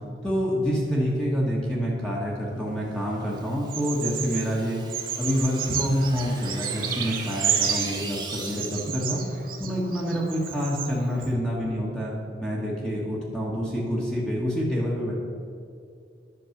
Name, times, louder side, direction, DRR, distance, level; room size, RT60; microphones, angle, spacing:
voice 1, 0.2-4.8 5.2-9.2 9.6-15.1, equal, 5° left, -5 dB, 1.5 m, -27 dB
sound 1, 3.1-9.1, right 3 dB, 25° right, 1.5 m, -40 dB
Bird vocalization bird call bird song, 3.7-4.5 4.9-8.1 8.5-10.9 11.2-11.3, right 8 dB, 50° right, 0.8 m, -31 dB
10.0 x 6.5 x 5.9 m, 2.4 s
head